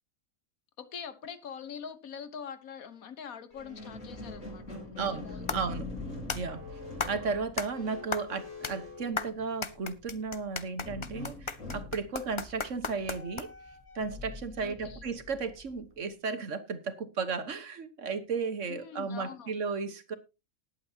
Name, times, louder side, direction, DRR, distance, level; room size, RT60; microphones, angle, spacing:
voice 1, 0.8-5.4 14.6-15.0 18.7-19.5, left 7 dB, 80° left, 1.6 m, -44 dB
Squeak, 3.5-9.9 10.8-16.0, left 3 dB, 65° left, 5.5 m, -44 dB
sound 1, 5.0-13.8, left 4 dB, 30° left, 0.6 m, -38 dB
voice 2, 5.0-5.3 5.5-5.9 6.3-6.6 7.0-13.5 13.9-20.1, right 4 dB, 60° right, 1.6 m, -34 dB
19.5 x 8.5 x 2.8 m
omnidirectional pair, 1.4 m